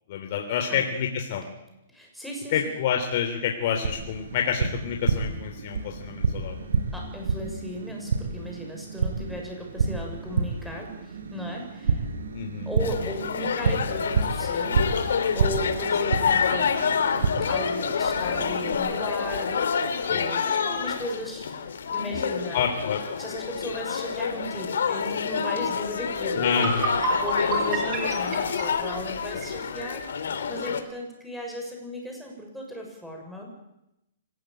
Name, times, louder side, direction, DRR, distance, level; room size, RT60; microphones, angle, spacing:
voice 1, 0.1-1.4 2.5-6.7 12.3-12.7 20.1-20.3 22.5-23.0 26.3-27.0, left 7 dB, 45° left, 3 dB, 3.3 m, -28 dB
voice 2, 1.9-2.6 6.9-12.0 12.6-16.8 17.5-22.6 23.2-26.5 27.1-33.5, equal, ahead, 0 dB, 6.6 m, -36 dB
Tap, 3.8-18.8, right 4 dB, 85° right, 5.2 m, -30 dB
sound 1, 12.8-30.8, left 6 dB, 80° left, 3.2 m, -28 dB
sound 2, 26.5-29.6, right 3 dB, 25° right, 5.2 m, -29 dB
25.0 x 17.0 x 9.1 m, 0.89 s
hypercardioid pair, 155°, 0 cm